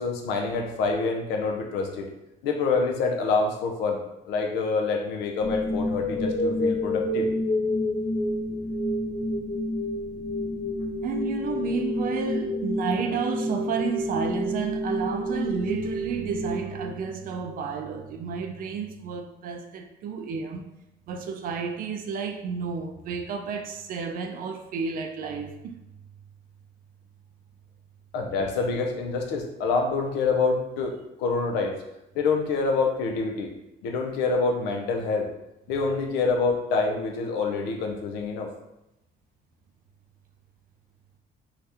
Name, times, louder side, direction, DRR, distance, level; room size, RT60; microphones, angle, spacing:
voice 1, 0.0-2.1 2.4-7.3 28.1-31.8 32.2-33.5 33.8-35.3 35.7-38.5, left 4 dB, 85° left, 0.5 m, -26 dB
sound 1, 5.4-17.5, left 1 dB, 40° left, 0.5 m, -29 dB
voice 2, 11.0-20.7 21.1-25.8, right 6 dB, 55° right, 0.4 m, -31 dB
2.8 x 2.3 x 3.4 m
cardioid pair, 110°, 17 cm